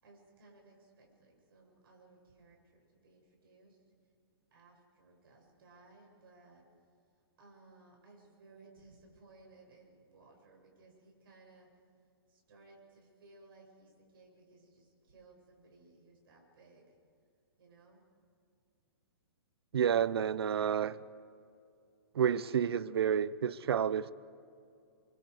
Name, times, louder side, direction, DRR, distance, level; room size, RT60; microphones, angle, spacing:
voice 1, 0.0-3.8 4.5-6.6 7.4-11.7 12.3-16.9 17.6-18.0, right 3 dB, 65° right, 7.4 m, -60 dB
voice 2, 19.7-21.0 22.1-24.1, right 8 dB, 85° right, 0.6 m, -30 dB
28.5 x 24.0 x 4.9 m
hypercardioid pair, 150°, 13 cm